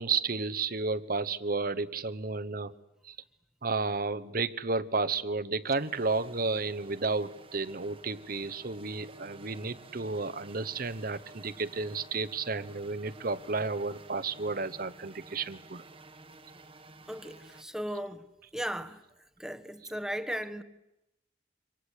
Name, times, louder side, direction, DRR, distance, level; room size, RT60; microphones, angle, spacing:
voice 1, 0.0-2.7 3.0-3.2 3.6-15.8, right 4 dB, 50° right, 1.1 m, -32 dB
sound 1, 5.7-17.6, right 3 dB, 30° right, 1.4 m, -52 dB
voice 2, 17.1-18.2 18.5-19.0 19.4-20.6, equal, 5° right, 1.3 m, -36 dB
28.0 x 25.0 x 8.2 m
head